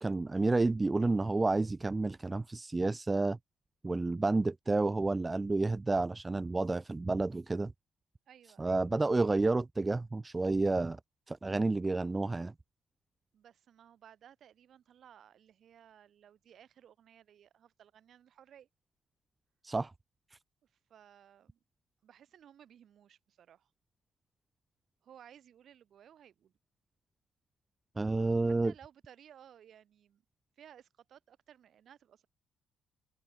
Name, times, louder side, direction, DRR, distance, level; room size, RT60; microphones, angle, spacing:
voice 1, 0.0-3.4 3.8-7.7 8.6-11.0 11.3-12.5 19.6-19.9 28.0-28.7, right 3 dB, 20° right, 0.4 m, -30 dB
voice 2, 8.3-8.9 13.3-18.7 20.6-21.6 22.0-23.7 25.0-26.5 28.4-30.2 30.6-32.3, right 9 dB, 65° right, 6.6 m, -58 dB
open air
cardioid pair, 90°, 0 cm